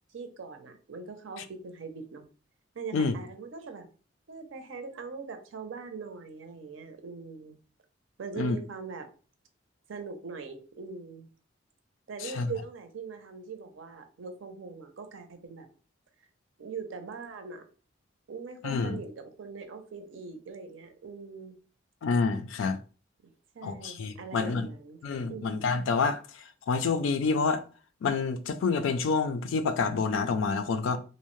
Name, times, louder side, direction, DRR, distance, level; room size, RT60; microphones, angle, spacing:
voice 1, 0.1-2.2 2.7-3.9 4.3-7.6 8.2-9.1 9.9-11.3 12.1-15.7 16.6-17.6 18.3-21.6 23.5-25.0 25.3-25.5, right 5 dB, 75° right, 0.5 m, -41 dB
voice 2, 18.6-19.0 22.0-22.8 23.6-24.7 25.0-26.2 26.7-27.6 28.0-31.0, left 4 dB, 80° left, 0.3 m, -28 dB
2.6 x 2.0 x 3.0 m
head